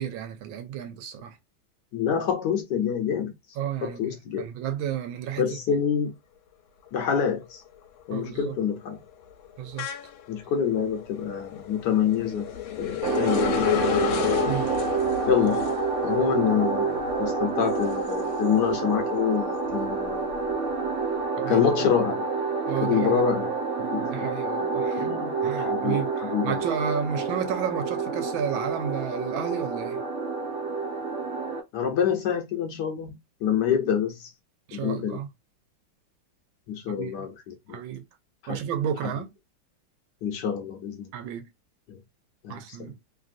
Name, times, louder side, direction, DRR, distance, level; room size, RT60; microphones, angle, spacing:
voice 1, 0.0-1.4 3.6-5.5 8.1-8.6 9.6-9.9 12.9-13.0 14.5-14.9 21.4-21.6 22.7-23.2 24.1-25.1 25.4-30.0 34.7-35.3 36.9-37.3 37.7-38.0 38.5-39.3 41.1-41.5 42.5-43.0, right 9 dB, 80° right, 1.4 m, -32 dB
voice 2, 1.9-3.3 3.8-4.5 5.4-6.1 6.9-7.6 8.1-9.0 10.3-12.5 12.8-13.6 15.3-15.7 16.0-20.3 21.5-22.2 22.8-23.5 23.9-24.3 25.0-26.0 26.3-26.6 31.7-34.3 34.7-35.2 36.7-37.8 38.4-38.6 40.2-41.1 41.9-42.0 42.4-42.9, left 8 dB, 65° left, 1.2 m, -26 dB
sound 1, 6.9-7.3 7.7-18.9 19.3-21.0, left 11 dB, 80° left, 1.4 m, -32 dB
sound 2, 13.0-31.6, right 4 dB, 60° right, 0.8 m, -28 dB
3.3 x 2.5 x 2.5 m
omnidirectional pair, 2.2 m